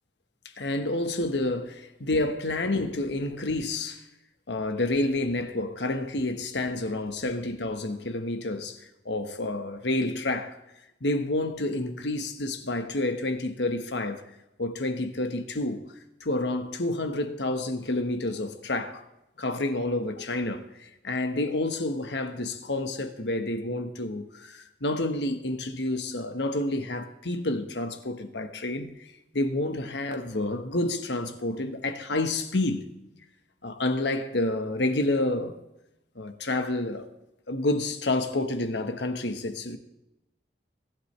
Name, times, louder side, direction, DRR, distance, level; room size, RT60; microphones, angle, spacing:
voice 1, 0.6-4.0 4.5-8.8 9.0-10.6 11.0-14.2 14.6-15.8 16.2-19.0 19.4-29.1 29.3-32.8 33.6-35.6 36.1-37.1 37.5-39.8, left 2 dB, 80° left, 1.4 m, -29 dB
23.5 x 11.5 x 3.4 m
head